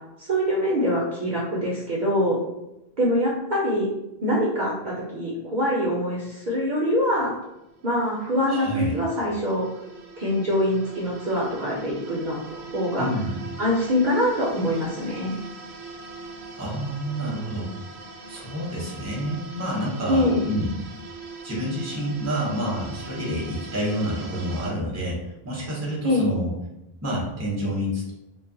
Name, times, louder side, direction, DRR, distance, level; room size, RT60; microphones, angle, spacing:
voice 1, 0.2-2.4 3.0-3.9 4.2-7.3 7.8-9.7 10.2-13.1 13.6-15.3 20.1-20.4 26.0-26.3, equal, 55° right, -5 dB, 0.6 m, -24 dB
sound 1, 7.0-24.7, right 3 dB, 90° right, 0.8 m, -42 dB
voice 2, 8.5-8.9 13.0-13.4 16.5-17.7 18.3-20.7 21.4-25.2 25.4-26.5 27.0-28.1, equal, 15° right, -4 dB, 0.7 m, -28 dB
2.3 x 2.0 x 3.7 m, 0.92 s
omnidirectional pair, 1.1 m